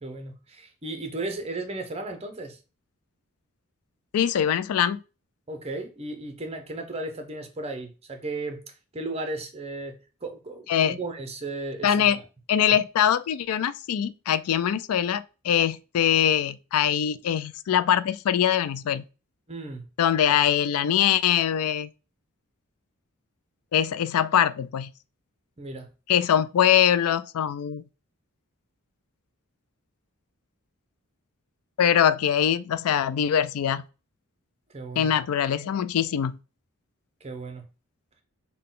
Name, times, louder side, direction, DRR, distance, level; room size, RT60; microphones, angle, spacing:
voice 1, 0.0-2.6 5.5-12.2 12.7-12.8 19.5-19.8 20.3-20.4 25.6-25.9 34.7-35.1 37.2-37.6, right 2 dB, 30° right, 0.7 m, -35 dB
voice 2, 4.1-5.0 10.7-11.0 11.8-12.2 12.5-19.0 20.0-21.9 23.7-24.9 26.1-27.8 31.8-33.8 35.0-36.4, left 9 dB, 85° left, 0.4 m, -23 dB
5.6 x 2.2 x 3.8 m
head